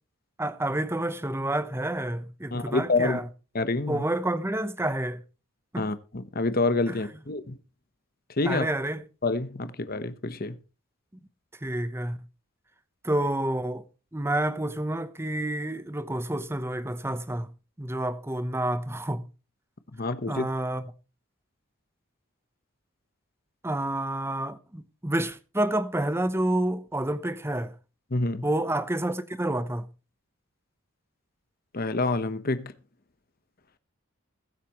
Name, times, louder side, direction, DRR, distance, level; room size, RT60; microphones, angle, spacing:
voice 1, 0.4-3.3 3.9-5.2 5.7-5.9 6.9-7.0 8.4-9.0 11.6-12.2 13.0-13.8 14.1-17.5 17.8-19.2 20.3-20.9 23.6-27.7 28.4-29.9, right 1 dB, 10° right, 0.8 m, -29 dB
voice 2, 2.5-3.2 3.5-4.0 5.8-7.6 8.3-8.7 9.2-10.6 19.9-20.5 28.1-28.5 31.7-32.7, left 2 dB, 45° left, 1.0 m, -27 dB
21.0 x 8.2 x 3.0 m
head